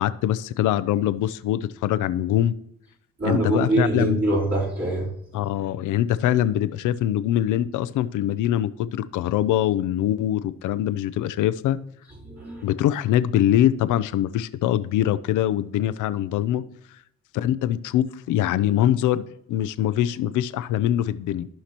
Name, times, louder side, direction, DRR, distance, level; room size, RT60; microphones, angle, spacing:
voice 1, 0.0-2.5 3.2-4.2 5.3-11.8 12.6-16.6 17.3-21.5, left 12 dB, 80° left, 14 dB, 0.6 m, -23 dB
voice 2, 3.2-5.1 12.2-12.6, right 2 dB, 40° right, -7 dB, 3.8 m, -24 dB
14.5 x 5.8 x 2.9 m, 0.75 s
cardioid pair, 90°, 30 cm